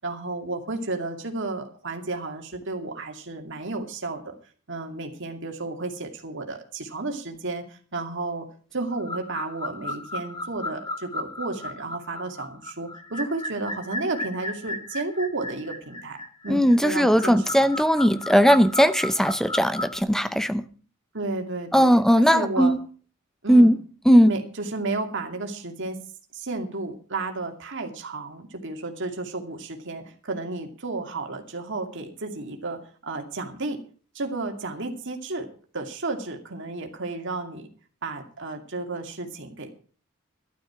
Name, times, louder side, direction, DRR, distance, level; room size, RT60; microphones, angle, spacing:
voice 1, 0.0-4.3 4.7-8.5 8.7-17.7 21.1-22.8 23.4-23.7 24.2-26.0 26.3-33.8 34.1-35.5 35.7-37.7 38.0-39.7, right 2 dB, 55° right, 2.5 m, -32 dB
sound 1, 8.9-20.0, left 1 dB, 15° left, 1.2 m, -35 dB
voice 2, 16.5-20.6 21.7-22.8 23.5-23.8 24.1-24.3, equal, ahead, 0.7 m, -18 dB
12.0 x 12.0 x 6.0 m
head